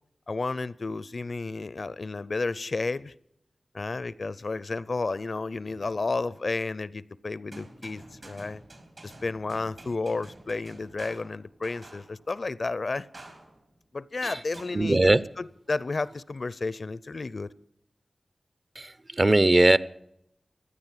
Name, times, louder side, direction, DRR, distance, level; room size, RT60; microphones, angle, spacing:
voice 1, 0.3-3.1 3.7-8.6 9.0-13.1 13.9-15.1 15.4-17.5, left 3 dB, 65° left, 0.5 m, -32 dB
sound 1, 5.7-6.6 7.5-12.3 13.1-13.8 14.5-15.4, right 2 dB, 65° right, 3.5 m, -49 dB
voice 2, 14.7-15.2 18.8-19.8, right 2 dB, 40° right, 0.6 m, -20 dB
15.5 x 9.7 x 9.0 m
cardioid pair, 45°, 0 cm